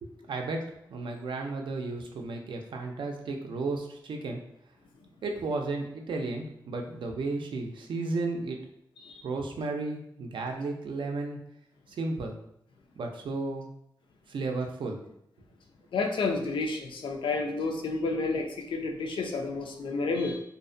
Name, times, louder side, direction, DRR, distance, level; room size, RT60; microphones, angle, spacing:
voice 1, 0.0-4.4 5.2-8.6 9.2-11.4 11.9-12.3 13.0-13.7 14.3-15.0, right 3 dB, 75° right, 3 dB, 0.4 m, -33 dB
voice 2, 15.9-20.4, left 3 dB, 85° left, 3 dB, 0.4 m, -30 dB
2.5 x 2.1 x 2.5 m, 0.78 s
wide cardioid pair, 120°, 8 cm